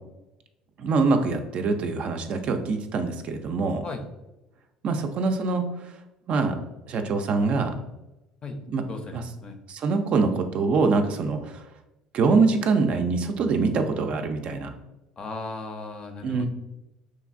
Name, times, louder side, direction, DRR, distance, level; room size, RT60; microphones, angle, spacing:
voice 1, 0.8-3.8 4.8-5.7 6.3-6.6 6.9-7.8 8.7-8.8 9.1-9.2 9.7-11.6 12.1-14.7 16.2-16.5, right 4 dB, 50° right, 6 dB, 0.3 m, -24 dB
voice 2, 8.9-9.6 15.2-16.5, left 3 dB, 35° left, 5 dB, 0.5 m, -36 dB
3.0 x 2.4 x 2.4 m, 0.96 s
hypercardioid pair, 75°, 3 cm